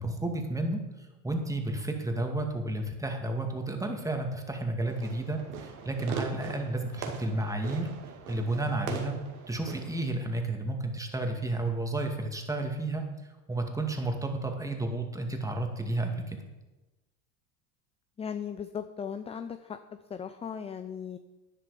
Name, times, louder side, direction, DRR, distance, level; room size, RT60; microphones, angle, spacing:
voice 1, 0.0-7.9 8.3-9.1 9.5-13.0 13.5-16.4, right 2 dB, 10° right, 3 dB, 2.2 m, -32 dB
Fireworks, 4.9-10.0, right 7 dB, 80° right, 2.2 m, -41 dB
voice 2, 18.2-19.8 20.1-21.2, left 7 dB, 15° left, 10 dB, 0.4 m, -37 dB
11.0 x 10.5 x 5.0 m, 1.1 s
hypercardioid pair, 90°, 43 cm